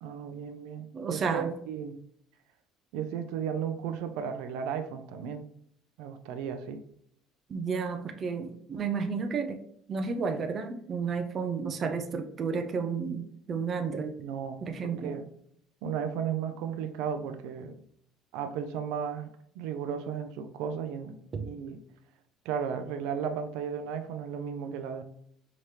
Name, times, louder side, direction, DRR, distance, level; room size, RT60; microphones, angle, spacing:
voice 1, 0.0-2.0 2.9-5.4 6.0-6.8 14.2-15.2 15.8-17.7 18.3-19.3 19.6-21.8 22.4-25.0, right 7 dB, 80° right, 7 dB, 0.5 m, -35 dB
voice 2, 0.9-1.5 7.5-9.6 9.9-14.2 14.6-15.1 21.3-21.4, right 5 dB, 30° right, 5 dB, 0.5 m, -32 dB
5.0 x 2.9 x 3.2 m, 0.66 s
cardioid pair, 150°, 0 cm